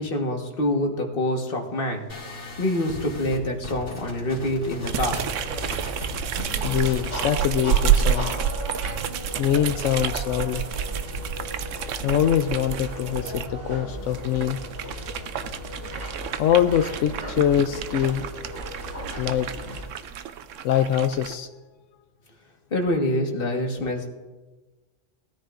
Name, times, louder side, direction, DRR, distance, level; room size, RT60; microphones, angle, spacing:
voice 1, 0.0-2.1 2.6-5.3 22.7-24.1, left 1 dB, 50° left, 2 dB, 1.6 m, -26 dB
sound 1, 2.1-8.2, left 1 dB, 70° left, 2.5 m, -39 dB
sound 2, 4.8-13.5 14.1-21.3, right 9 dB, 90° right, 1.0 m, -29 dB
sound 3, 5.1-19.8, equal, 70° right, 3.5 m, -36 dB
voice 2, 6.6-8.3 9.4-10.7 12.0-14.6 16.4-18.3 19.2-19.5 20.6-21.5, left 10 dB, 85° left, 8 dB, 0.9 m, -23 dB
19.0 x 13.5 x 2.5 m, 1.2 s
omnidirectional pair, 1.3 m